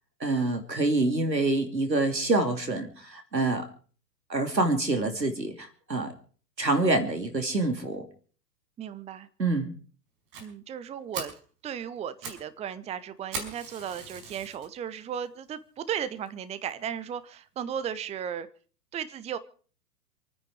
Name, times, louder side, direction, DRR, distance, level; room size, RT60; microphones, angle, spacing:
voice 1, 0.2-3.6 4.3-6.1 6.6-8.0 9.4-9.7, right 2 dB, 90° right, 2.9 m, -26 dB
voice 2, 8.8-9.3 10.4-11.3 11.6-18.5 18.9-19.4, right 8 dB, 15° right, 0.8 m, -35 dB
Fire, 10.3-10.5 10.9-11.0 11.1-11.4 12.0-12.5 12.7-12.8 13.3-14.7 15.2-15.3 15.9-16.0 16.3-16.4 16.7-16.8, right 4 dB, 40° right, 5.4 m, -39 dB
27.5 x 9.6 x 4.9 m
figure-of-eight pair, 100°, 49 cm